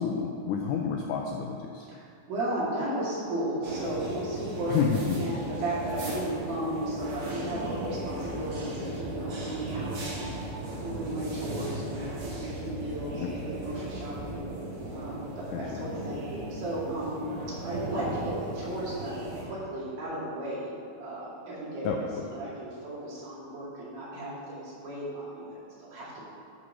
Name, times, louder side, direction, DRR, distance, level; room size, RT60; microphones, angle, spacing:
voice 1, 0.0-1.9 4.7-5.2 13.2-13.3 15.5-15.9 21.8-22.2, left 6 dB, 90° left, 1 dB, 1.8 m, -29 dB
voice 2, 1.9-4.8 5.2-10.3 10.7-14.5 14.9-16.2 16.5-17.2 17.6-26.2, right 1 dB, 70° right, -9 dB, 4.2 m, -35 dB
sound 1, 3.6-19.4, right 1 dB, 50° right, 2.0 m, -36 dB
sound 2, 7.0-14.4, left 1 dB, 20° left, 2.0 m, -48 dB
11.5 x 4.7 x 6.1 m, 2.7 s
omnidirectional pair, 4.4 m